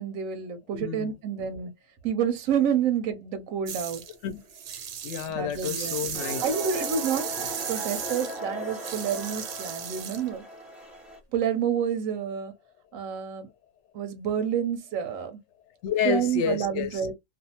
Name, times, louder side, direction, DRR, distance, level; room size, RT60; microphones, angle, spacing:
voice 1, 0.0-1.7 2.0-4.0 5.3-6.0 6.4-7.3 7.7-10.4 11.3-12.5 12.9-13.5 13.9-15.4 16.0-17.1, right 8 dB, 90° right, 1.0 m, -28 dB
voice 2, 0.7-1.1 4.1-4.4 4.7-6.4 15.8-17.0, left 9 dB, 70° left, 0.8 m, -30 dB
sound 1, 3.7-4.1 4.5-10.3, right 8 dB, 65° right, 0.7 m, -35 dB
sound 2, 6.1-11.2, right 1 dB, ahead, 0.7 m, -38 dB
2.5 x 2.3 x 2.7 m
omnidirectional pair, 1.4 m